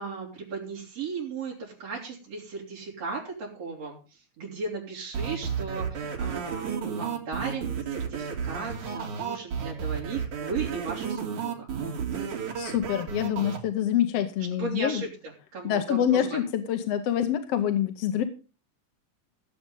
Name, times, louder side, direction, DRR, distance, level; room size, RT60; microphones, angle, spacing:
voice 1, 0.0-4.0 4.4-11.7 12.1-12.2 14.6-15.1 15.5-16.4, right 4 dB, 55° right, -4 dB, 4.5 m, -36 dB
sound 1, 5.1-13.6, right 6 dB, 75° right, 3.9 m, -32 dB
voice 2, 12.6-15.0 15.6-18.2, left 10 dB, 65° left, 8 dB, 1.8 m, -26 dB
16.0 x 7.9 x 5.4 m, 0.34 s
omnidirectional pair, 3.5 m